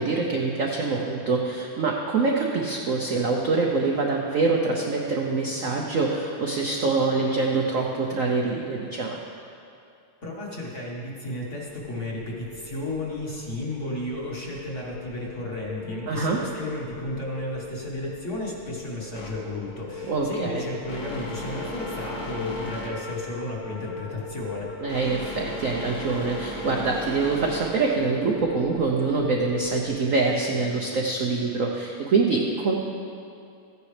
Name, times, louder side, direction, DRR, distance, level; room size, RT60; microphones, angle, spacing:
voice 1, 0.0-9.2 16.1-16.4 20.1-20.7 24.8-32.8, right 4 dB, 70° right, -1 dB, 0.7 m, -25 dB
voice 2, 10.2-24.7, left 1 dB, 40° left, -3 dB, 1.5 m, -33 dB
sound 1, 11.3-29.9, left 3 dB, 85° left, 2.3 m, -40 dB
sound 2, 19.1-28.4, left 1 dB, 70° left, 2.3 m, -38 dB
14.5 x 9.9 x 3.3 m, 2.5 s
omnidirectional pair, 2.3 m